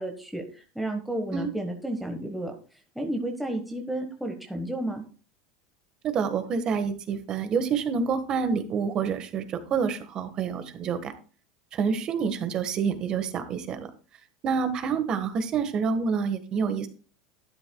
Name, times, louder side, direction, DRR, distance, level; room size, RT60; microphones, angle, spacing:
voice 1, 0.0-2.6 2.9-5.0, right 1 dB, ahead, 2 dB, 1.3 m, -32 dB
voice 2, 6.0-11.1 11.7-13.9 14.4-16.9, right 6 dB, 40° right, 9 dB, 1.5 m, -27 dB
12.0 x 9.9 x 2.3 m, 0.37 s
supercardioid pair, 115°, 2 cm